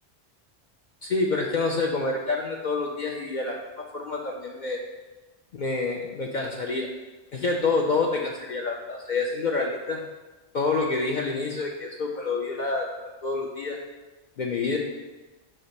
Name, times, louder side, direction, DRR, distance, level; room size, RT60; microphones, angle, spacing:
voice 1, 1.0-4.8 5.5-6.9 7.3-10.0 10.5-12.9 13.2-13.8 14.4-14.8, left 3 dB, 55° left, 0 dB, 0.6 m, -27 dB
6.3 x 2.9 x 5.2 m, 1.2 s
omnidirectional pair, 1.1 m